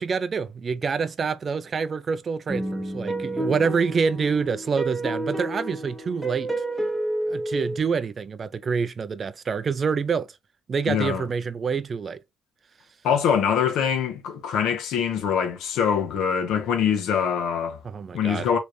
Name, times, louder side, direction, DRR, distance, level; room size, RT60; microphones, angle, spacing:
voice 1, 0.0-6.5 7.3-10.3 10.7-12.2 17.8-18.5, right 5 dB, 30° right, 0.3 m, -26 dB
sound 1, 2.5-7.8, right 1 dB, ahead, 0.9 m, -30 dB
voice 2, 10.9-11.3 13.0-17.8 18.1-18.6, left 7 dB, 65° left, 1.1 m, -24 dB
3.2 x 3.1 x 2.6 m
cardioid pair, 140°, 0 cm